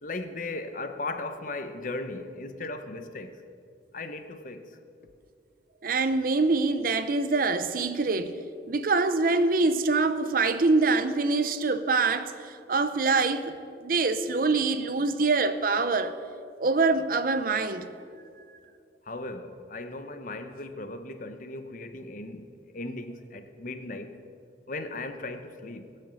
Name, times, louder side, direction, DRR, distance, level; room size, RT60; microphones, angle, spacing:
voice 1, 0.0-3.4 3.9-4.8 19.0-24.2 24.7-25.9, left 2 dB, 45° left, 0.9 m, -37 dB
voice 2, 5.8-8.4 8.7-13.6 13.8-16.2 16.6-17.9, right 3 dB, 50° right, 0.7 m, -25 dB
19.5 x 6.6 x 8.4 m
head